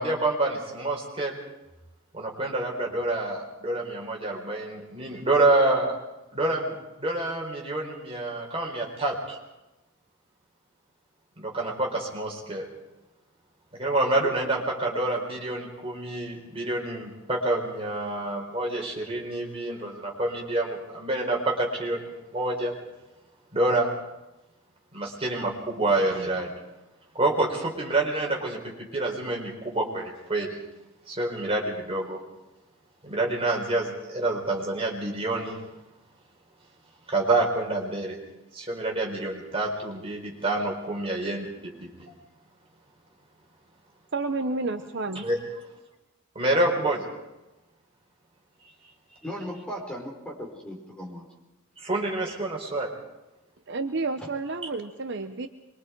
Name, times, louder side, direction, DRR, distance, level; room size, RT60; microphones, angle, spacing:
voice 1, 0.0-1.4 2.1-6.0 6.3-9.4 11.4-12.7 13.7-22.7 23.5-23.9 24.9-26.5 27.1-30.6 31.1-32.2 33.0-35.6 37.1-38.2 38.5-42.1 45.2-45.4 46.3-47.0 51.8-52.9, right 2 dB, 30° right, 0 dB, 4.3 m, -27 dB
voice 2, 44.1-45.2 53.7-55.5, right 3 dB, 55° right, 7 dB, 0.9 m, -30 dB
voice 3, 49.2-51.3 54.2-54.3, equal, 5° left, -1 dB, 4.6 m, -37 dB
25.0 x 23.0 x 4.7 m, 1.0 s
head